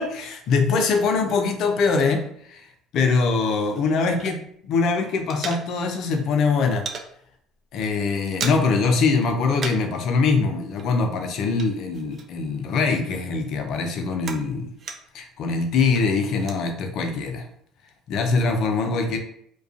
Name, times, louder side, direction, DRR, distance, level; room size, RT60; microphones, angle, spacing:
voice 1, 0.0-2.6 2.9-4.3 4.7-6.9 7.7-14.7 15.1-17.5 18.1-19.2, left 4 dB, 65° left, 5 dB, 0.4 m, -23 dB
sound 1, 3.2-4.7 5.0-6.1 6.4-7.1 7.5-7.7 8.0-8.9 9.1-10.0 10.2-12.6 12.9-15.3 15.7-16.6, right 5 dB, 45° right, 0.4 m, -37 dB
2.3 x 2.3 x 2.4 m, 0.68 s
hypercardioid pair, 70°, 0 cm